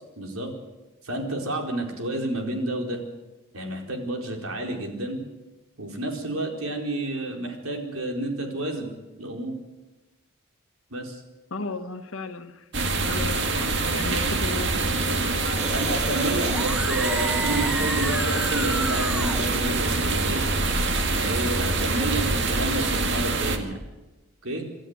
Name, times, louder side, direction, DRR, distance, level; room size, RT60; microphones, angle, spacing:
voice 1, 0.2-0.5 1.0-3.0 3.5-5.2 5.8-9.6 10.9-11.2 15.7-20.4 21.1-23.8 24.4-24.7, right 1 dB, 80° right, 4.5 m, -30 dB
voice 2, 11.5-12.7 13.0-15.7 16.1-16.6, left 3 dB, 75° left, 1.5 m, -35 dB
sound 1, 12.7-23.6, right 3 dB, 55° right, 2.1 m, -25 dB
sound 2, 15.6-23.2, equal, 5° right, 1.2 m, -34 dB
27.5 x 13.0 x 8.2 m
head